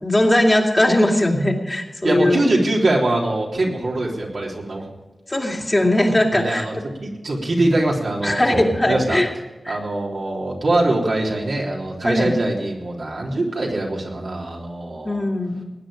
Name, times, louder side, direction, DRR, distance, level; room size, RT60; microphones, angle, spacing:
voice 1, 0.0-2.4 5.3-6.8 8.2-9.3 9.6-9.8 12.0-12.3 15.0-15.6, left 1 dB, 20° left, 0 dB, 2.4 m, -19 dB
voice 2, 2.0-4.9 6.3-9.2 9.7-15.2, right 2 dB, 70° right, -2 dB, 3.6 m, -23 dB
19.5 x 9.6 x 5.1 m, 1.1 s
wide cardioid pair, 80°, 0 cm